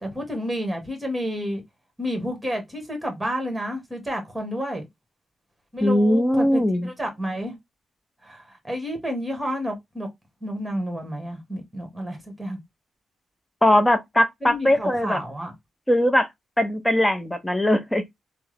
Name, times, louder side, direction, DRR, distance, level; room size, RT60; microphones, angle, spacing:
voice 1, 0.0-1.6 2.0-4.9 5.7-7.6 8.2-10.1 10.4-12.6 14.4-15.5, equal, 10° right, 1.6 m, -30 dB
voice 2, 5.8-6.9 13.6-15.2 15.9-16.3 16.6-18.0, left 1 dB, 10° left, 0.6 m, -20 dB
3.3 x 2.1 x 3.2 m
cardioid pair, 75°, 0 cm